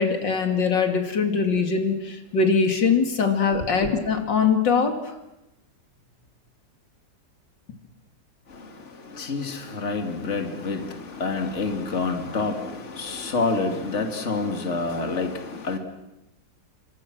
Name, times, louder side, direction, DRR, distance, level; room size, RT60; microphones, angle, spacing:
voice 1, 0.0-5.1, left 5 dB, 85° left, 3.2 m, -22 dB
voice 2, 8.5-15.8, left 3 dB, 40° left, 2.7 m, -28 dB
29.0 x 25.0 x 6.2 m
omnidirectional pair, 1.9 m